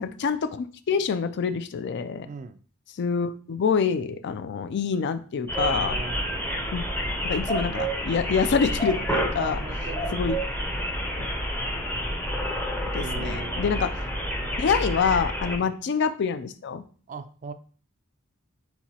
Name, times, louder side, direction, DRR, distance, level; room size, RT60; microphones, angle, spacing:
voice 1, 0.0-2.3 3.0-6.0 6.7-6.8 7.2-9.6 10.1-10.4 11.2-11.3 12.9-13.9 14.6-16.8, left 6 dB, 50° left, 12 dB, 0.3 m, -26 dB
voice 2, 2.3-2.6 5.8-6.4 9.4-10.2 13.0-13.8 15.6-15.7 17.1-17.5, right 4 dB, 35° right, 11 dB, 0.3 m, -38 dB
sound 1, 5.5-15.6, equal, 10° left, 0.6 m, -29 dB
4.6 x 3.9 x 2.8 m, 0.42 s
head